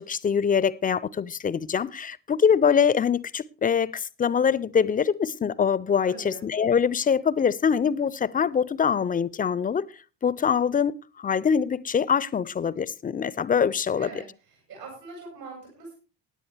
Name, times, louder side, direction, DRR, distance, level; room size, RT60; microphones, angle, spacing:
voice 1, 0.0-9.9 10.2-14.1, left 7 dB, 20° left, 0.5 m, -24 dB
voice 2, 6.0-6.4 13.9-15.9, right 3 dB, 75° right, 5.2 m, -42 dB
16.0 x 9.9 x 3.3 m
figure-of-eight pair, 50°, 48 cm